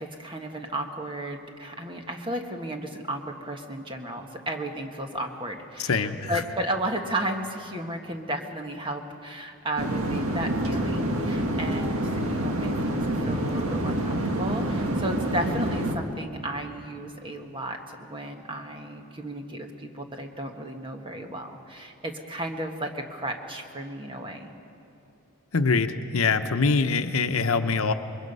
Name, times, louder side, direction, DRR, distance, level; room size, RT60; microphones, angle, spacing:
voice 1, 0.0-24.5, right 1 dB, 25° right, 4 dB, 1.4 m, -34 dB
voice 2, 5.8-6.4 25.5-27.9, left 4 dB, 80° left, 9 dB, 0.9 m, -24 dB
sound 1, 9.8-16.0, right 1 dB, 85° right, 1.8 m, -27 dB
27.0 x 22.0 x 5.5 m, 2.7 s
head